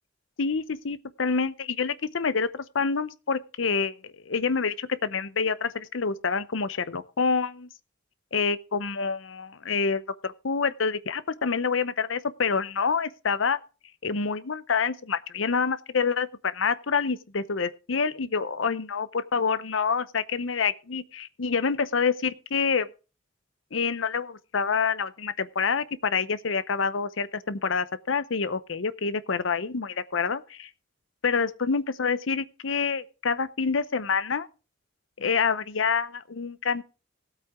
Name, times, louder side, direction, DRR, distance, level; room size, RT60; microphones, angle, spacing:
voice 1, 0.4-7.7 8.3-13.6 14.0-22.9 23.7-30.4 31.2-34.5 35.2-36.8, left 5 dB, 70° left, 0.8 m, -27 dB
18.0 x 8.4 x 3.6 m
head